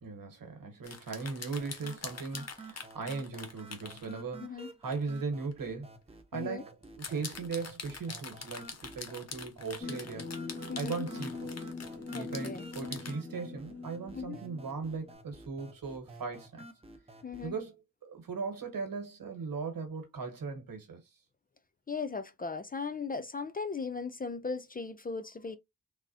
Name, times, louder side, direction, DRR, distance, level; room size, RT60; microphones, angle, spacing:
voice 1, 0.0-5.9 6.3-6.7 7.0-10.3 10.8-11.5 12.1-16.6 17.4-21.0, right 4 dB, 75° right, 1.2 m, -38 dB
sound 1, 0.8-4.1 4.9-5.1 5.5-5.6 6.8-13.1, left 5 dB, 50° left, 0.8 m, -44 dB
sound 2, 1.6-17.6, right 2 dB, 15° right, 0.6 m, -52 dB
voice 2, 4.4-4.7 6.3-6.6 10.7-11.1 12.1-12.6 14.1-14.4 17.2-17.6 21.9-25.6, left 4 dB, 25° left, 0.4 m, -37 dB
sound 3, 9.8-15.1, left 4 dB, 5° left, 1.2 m, -42 dB
3.6 x 2.0 x 2.5 m
cardioid pair, 60°, 34 cm